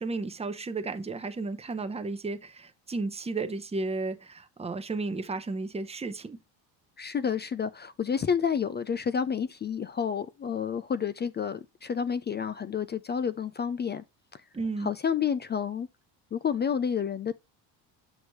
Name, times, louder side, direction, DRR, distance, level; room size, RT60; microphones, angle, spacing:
voice 1, 0.0-6.4 14.5-14.9, right 3 dB, 15° right, 0.8 m, -33 dB
voice 2, 7.0-14.0 14.3-14.4 14.8-15.9 16.3-17.3, left 7 dB, 25° left, 0.3 m, -30 dB
7.7 x 6.4 x 3.1 m
supercardioid pair, 85°, 48 cm